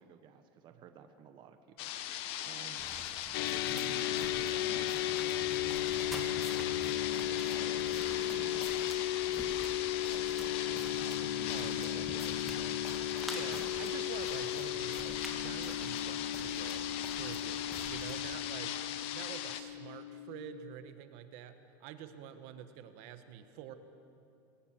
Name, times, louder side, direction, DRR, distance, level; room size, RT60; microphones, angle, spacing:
voice 1, 0.0-2.2 2.4-2.9 3.5-5.5 6.2-6.5 6.7-9.8 10.1-12.8 13.4-13.7, right 7 dB, 40° right, 7 dB, 1.2 m, -53 dB
sound 1, 1.8-19.6, left 11 dB, 55° left, 1.2 m, -40 dB
sound 2, 2.8-18.3, right 1 dB, ahead, 2.2 m, -49 dB
sound 3, 3.3-20.7, left 12 dB, 85° left, 0.6 m, -36 dB
voice 2, 11.5-12.1 13.3-16.9 17.2-18.8 19.1-23.7, right 9 dB, 60° right, 9 dB, 1.3 m, -47 dB
21.5 x 17.5 x 7.7 m, 2.6 s
supercardioid pair, 140°, 12 cm